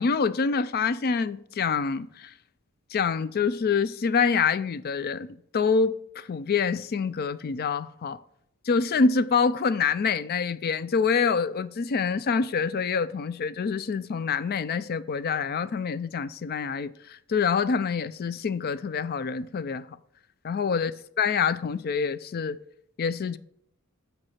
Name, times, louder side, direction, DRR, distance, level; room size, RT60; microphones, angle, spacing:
voice 1, 0.0-2.3 2.9-8.2 8.7-19.8 20.4-20.9 21.2-22.6 23.0-23.4, left 5 dB, 45° left, 0.4 m, -26 dB
8.0 x 4.6 x 5.7 m
head